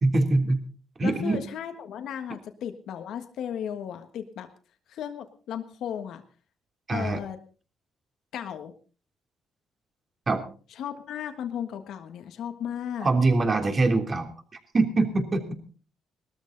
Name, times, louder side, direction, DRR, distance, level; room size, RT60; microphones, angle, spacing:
voice 1, 0.0-0.6 1.0-1.4 6.9-7.2 10.3-10.4 13.0-14.3 14.7-15.5, right 2 dB, 35° right, 5 dB, 3.2 m, -23 dB
voice 2, 1.0-4.5 4.9-6.2 6.9-7.4 8.3-8.7 10.8-13.1, left 9 dB, 75° left, 7 dB, 1.5 m, -35 dB
19.5 x 13.5 x 4.0 m, 0.39 s
cardioid pair, 90°, 0 cm